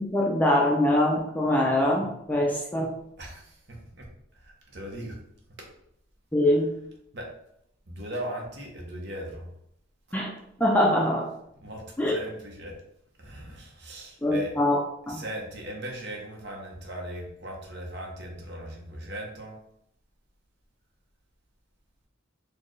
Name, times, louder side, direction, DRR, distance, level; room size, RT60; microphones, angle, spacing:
voice 1, 0.0-2.9 6.3-6.7 10.1-10.3 10.6-11.3 12.0-12.1 14.2-14.8 15.1-15.2, left 1 dB, 10° left, -1 dB, 0.4 m, -23 dB
voice 2, 3.2-4.1 4.3-5.2 5.6-5.7 6.4-6.5 7.1-7.3 7.9-9.5 11.6-12.8 13.2-14.6 15.1-19.6, equal, 55° right, 0 dB, 0.9 m, -38 dB
4.2 x 2.3 x 3.1 m, 0.75 s
head